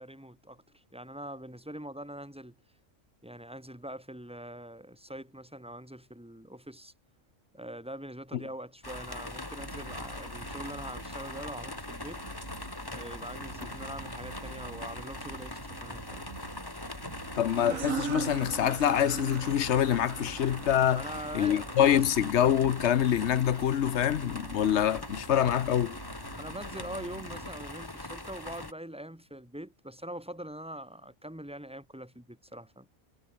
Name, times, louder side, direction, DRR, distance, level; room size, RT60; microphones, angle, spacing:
voice 1, 0.0-2.5 3.2-6.9 7.5-12.2 12.9-16.3 20.9-22.0 26.3-32.9, right 1 dB, 5° right, 3.5 m, -43 dB
sound 1, 8.8-28.7, left 2 dB, 15° left, 1.9 m, -41 dB
sound 2, 9.6-27.5, right 6 dB, 55° right, 1.7 m, -48 dB
voice 2, 17.4-21.0 21.3-26.0, left 10 dB, 60° left, 1.0 m, -25 dB
sound 3, 17.6-22.9, right 7 dB, 80° right, 1.7 m, -40 dB
omnidirectional pair, 1.4 m